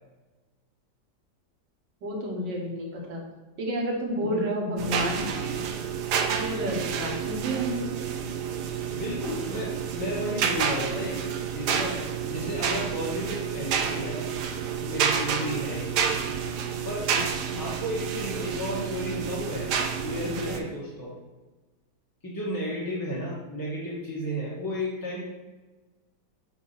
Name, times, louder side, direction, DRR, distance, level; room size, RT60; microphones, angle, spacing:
voice 1, 2.0-3.2 3.6-5.6 6.3-7.8 17.1-17.2 17.5-17.6 20.2-20.6, right 1 dB, 90° right, -1 dB, 2.0 m, -31 dB
sound 1, 4.8-20.6, right 7 dB, 70° right, 1.2 m, -29 dB
voice 2, 8.9-11.2 11.5-12.0 12.3-14.3 14.8-16.0 16.8-17.1 17.6-19.7 20.0-21.1 22.2-25.2, equal, 15° left, -6 dB, 0.8 m, -33 dB
8.1 x 2.9 x 5.5 m, 1.2 s
omnidirectional pair, 1.9 m